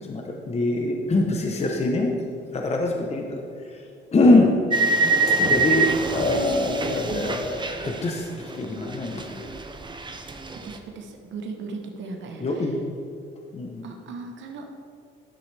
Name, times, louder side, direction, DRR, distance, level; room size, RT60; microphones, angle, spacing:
voice 1, 0.0-2.1 2.5-3.4 3.7-3.8 4.1-4.6 5.4-9.4 12.4-12.9 13.5-13.9, left 2 dB, 35° left, 1 dB, 0.9 m, -23 dB
sound 1, 4.7-8.6 8.9-10.8, right 3 dB, 25° right, 0.7 m, -25 dB
voice 2, 6.2-7.3 10.5-12.7 13.8-14.6, right 3 dB, 70° right, 2 dB, 1.0 m, -37 dB
11.5 x 6.1 x 3.4 m, 2.3 s
cardioid pair, 90°, 20 cm